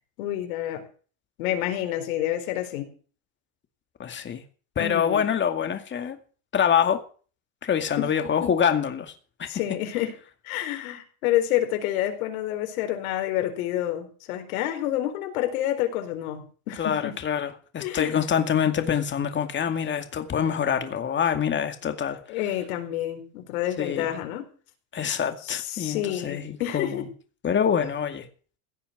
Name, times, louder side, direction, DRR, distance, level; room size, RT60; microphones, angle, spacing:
voice 1, 0.2-0.8 1.4-2.9 4.8-5.2 8.0-8.1 8.4-8.5 9.5-10.1 10.4-17.2 17.8-18.2 22.3-24.5 25.4-27.0, left 12 dB, 85° left, 4.4 m, -28 dB
voice 2, 4.0-4.4 4.8-6.2 6.5-7.0 7.6-9.1 9.4-9.5 16.8-22.2 23.8-24.2 24.9-27.0 27.4-28.3, left 8 dB, 25° left, 2.2 m, -25 dB
16.5 x 6.9 x 9.4 m
supercardioid pair, 135°, 42 cm